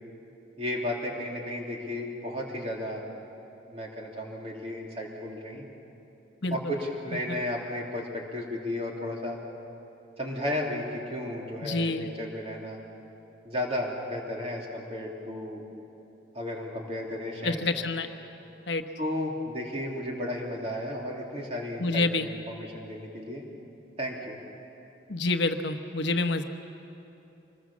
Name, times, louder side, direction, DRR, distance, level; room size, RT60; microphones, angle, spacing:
voice 1, 0.6-3.0 3.7-5.6 6.5-9.4 10.2-12.8 13.4-15.6 16.3-17.6 19.0-23.4 24.0-24.4, left 1 dB, 30° right, -2 dB, 3.2 m, -34 dB
voice 2, 11.6-12.1 17.4-18.1 18.7-18.8 21.8-22.3 25.1-26.4, left 3 dB, 65° left, 7 dB, 1.0 m, -27 dB
25.5 x 20.5 x 7.3 m, 2.8 s
head